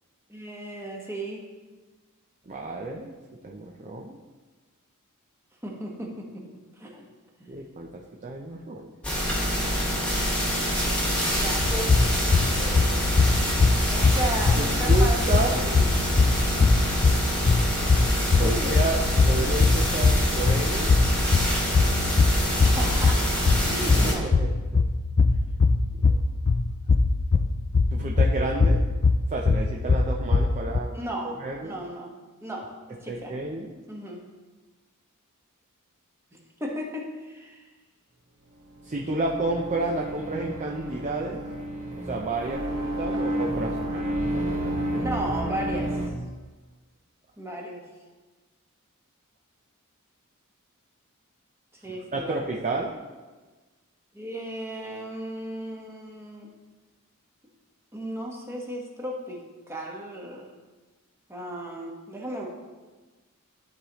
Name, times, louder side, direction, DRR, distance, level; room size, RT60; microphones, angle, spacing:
voice 1, 0.3-1.5 5.6-6.4 6.8-7.1 7.4-7.6 11.3-12.9 13.9-15.9 16.6-16.7 18.4-18.8 22.6-24.3 30.9-32.1 32.4-32.7 33.0-33.4 33.9-34.2 36.6-37.6 44.9-45.9 47.4-47.8 51.8-52.5 54.1-56.5 57.9-60.5 61.3-62.5, right 1 dB, 10° right, -1 dB, 1.2 m, -35 dB
voice 2, 2.5-3.1 3.4-4.2 7.5-7.9 8.2-8.9 11.0-11.5 14.0-14.2 14.6-15.6 18.4-20.9 24.0-24.8 26.0-26.2 27.9-28.8 29.3-30.9 31.4-31.8 33.1-33.8 38.9-41.4 42.1-44.1 44.3-45.1 52.1-53.0, right 2 dB, 35° right, -1 dB, 0.6 m, -31 dB
sound 1, 9.0-24.1, equal, 5° left, 1.5 m, -26 dB
sound 2, 11.6-30.8, left 3 dB, 35° left, 0.3 m, -22 dB
sound 3, 38.6-46.1, right 1 dB, 60° right, 1.5 m, -30 dB
12.0 x 4.9 x 3.0 m, 1.3 s
head